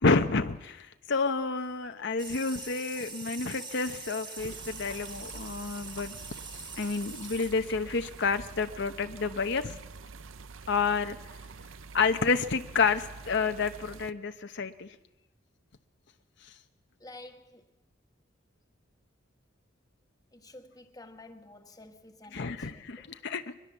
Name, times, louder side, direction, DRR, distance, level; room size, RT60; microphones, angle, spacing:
voice 1, 0.0-6.1 6.5-9.8 10.7-11.2 11.9-14.9 16.4-16.5 22.3-23.5, left 4 dB, 65° left, 0.9 m, -29 dB
sound 1, 2.2-8.9, right 3 dB, 25° right, 2.2 m, -44 dB
sound 2, 4.4-14.1, right 4 dB, 80° right, 0.7 m, -47 dB
voice 2, 17.0-17.7 20.3-23.2, left 2 dB, 20° left, 1.5 m, -50 dB
23.0 x 21.0 x 7.2 m
head